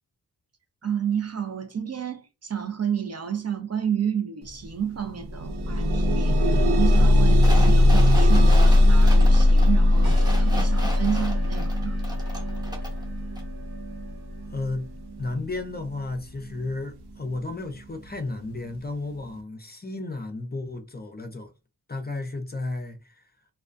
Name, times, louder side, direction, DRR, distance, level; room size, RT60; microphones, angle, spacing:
voice 1, 0.8-12.0, right 8 dB, 40° right, 0.5 m, -30 dB
sound 1, 4.5-4.6 5.0-16.0 16.8-16.9 17.3-17.4, left 1 dB, 85° right, 0.6 m, -19 dB
sound 2, 7.4-13.0 13.4-13.5, left 1 dB, 10° right, 0.8 m, -37 dB
sound 3, 10.0-15.2, right 2 dB, 65° right, 1.2 m, -44 dB
voice 2, 14.5-14.9 15.2-21.5 21.9-23.2, left 2 dB, 25° left, 0.5 m, -33 dB
2.2 x 2.2 x 2.5 m
wide cardioid pair, 65°, 38 cm